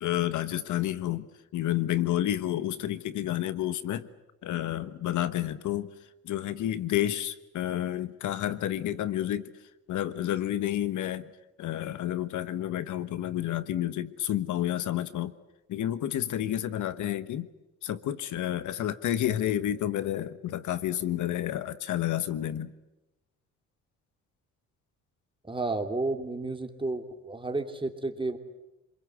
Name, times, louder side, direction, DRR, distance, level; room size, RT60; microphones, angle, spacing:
voice 1, 0.0-4.1 4.4-5.9 6.2-9.5 9.9-11.3 11.6-15.3 15.7-17.5 17.8-22.7, left 12 dB, 75° left, 13 dB, 1.2 m, -30 dB
voice 2, 25.4-28.4, right 2 dB, 15° right, 5 dB, 3.0 m, -32 dB
27.5 x 22.0 x 8.1 m, 0.97 s
cardioid pair, 90°, 30 cm